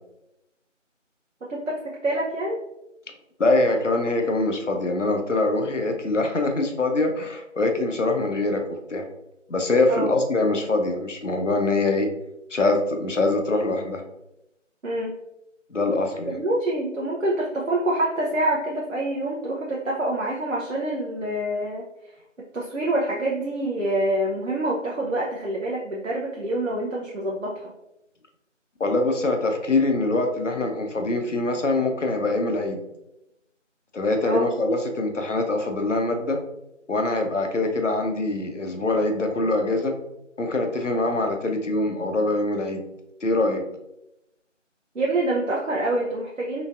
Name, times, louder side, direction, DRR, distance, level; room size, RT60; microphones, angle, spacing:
voice 1, 1.5-2.6 9.9-10.1 14.8-15.1 16.3-21.9 22.5-27.6 34.2-34.5 44.9-46.6, right 1 dB, 80° right, -3 dB, 0.8 m, -26 dB
voice 2, 3.4-8.6 8.9-9.1 9.5-12.1 12.5-14.0 15.7-16.4 28.8-32.8 33.9-36.4 36.9-39.9 40.4-42.8 43.2-43.6, left 2 dB, 70° left, 4 dB, 0.8 m, -23 dB
3.9 x 3.3 x 2.4 m, 0.88 s
figure-of-eight pair, 175°, 38 cm